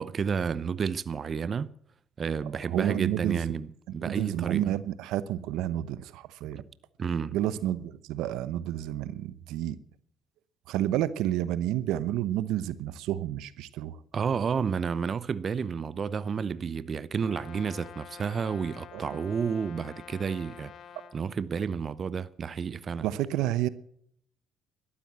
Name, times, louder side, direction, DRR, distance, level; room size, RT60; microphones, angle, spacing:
voice 1, 0.0-1.7 2.2-4.8 7.0-7.4 14.1-20.7 21.1-23.1, right 6 dB, 45° right, 0.7 m, -31 dB
voice 2, 2.7-3.5 3.9-6.6 7.3-9.8 10.7-14.0 18.9-19.1 23.0-23.7, right 12 dB, 80° right, 0.8 m, -30 dB
Brass instrument, 17.2-21.2, left 8 dB, 60° left, 1.5 m, -48 dB
12.5 x 12.0 x 7.5 m
supercardioid pair, 75°, 0 cm